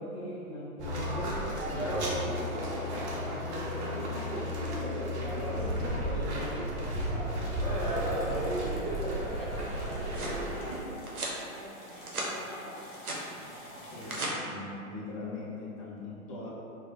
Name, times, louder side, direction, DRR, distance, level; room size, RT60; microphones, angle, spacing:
voice 1, 0.0-6.9 13.9-16.5, left 1 dB, 25° left, -7 dB, 0.5 m, -40 dB
sound 1, 0.8-10.8, equal, 50° right, 0.6 m, -33 dB
sound 2, 3.7-6.8 7.3-14.3, equal, 55° left, 0.9 m, -49 dB
voice 2, 6.3-6.6 7.5-8.9 9.2-12.8, equal, 15° right, -10 dB, 0.7 m, -47 dB
sound 3, 10.0-10.4 11.1-11.4 11.8-12.3 12.7-13.2 13.8-14.3, right 2 dB, 90° right, 0.7 m, -37 dB
3.2 x 2.1 x 2.5 m, 2.7 s
figure-of-eight pair, 120°, 43 cm